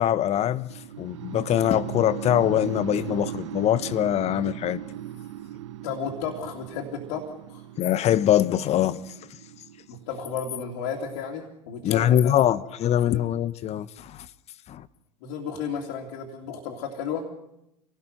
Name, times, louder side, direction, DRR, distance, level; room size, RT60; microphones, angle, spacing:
voice 1, 0.0-4.8 7.8-9.1 11.8-14.3 14.7-14.9, left 11 dB, 45° left, 1.0 m, -23 dB
sound 1, 0.7-10.7, right 12 dB, 70° right, 1.0 m, -38 dB
voice 2, 5.8-7.7 9.9-12.6 13.0-13.3 15.2-17.3, left 6 dB, 65° left, 2.9 m, -33 dB
27.0 x 18.0 x 6.0 m
hypercardioid pair, 70°, 15 cm